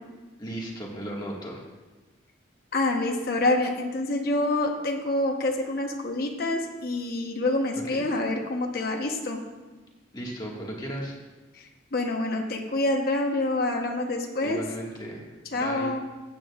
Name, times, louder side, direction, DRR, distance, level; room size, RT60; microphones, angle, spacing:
voice 1, 0.4-1.6 7.7-8.1 10.1-11.1 14.4-15.9, equal, 25° left, -2 dB, 1.7 m, -36 dB
voice 2, 2.7-9.4 11.6-14.6 15.5-16.0, left 2 dB, 50° left, 1 dB, 1.0 m, -27 dB
15.0 x 9.0 x 2.4 m, 1.2 s
head